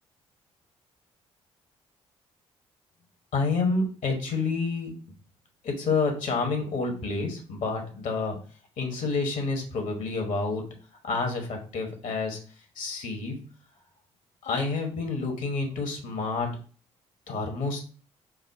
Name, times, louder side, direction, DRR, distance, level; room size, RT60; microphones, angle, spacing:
voice 1, 3.3-4.9 5.6-8.4 8.8-10.7 11.0-12.4 12.8-13.4 14.4-16.5 17.3-17.8, left 3 dB, 60° left, 3 dB, 1.1 m, -28 dB
4.7 x 2.1 x 3.5 m, 0.40 s
hypercardioid pair, 45°, 15 cm